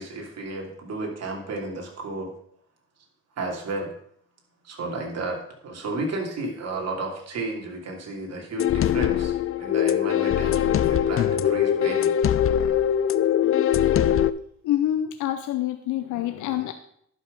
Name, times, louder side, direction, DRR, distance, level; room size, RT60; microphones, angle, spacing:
voice 1, 0.0-2.3 3.4-3.9 4.6-12.1, right 2 dB, 55° right, 1 dB, 2.7 m, -33 dB
sound 1, 8.6-14.3, left 10 dB, 45° left, 0.5 m, -22 dB
voice 2, 14.6-16.7, left 12 dB, 80° left, 9 dB, 0.7 m, -26 dB
11.0 x 5.9 x 5.2 m, 0.67 s
cardioid pair, 90°, 30 cm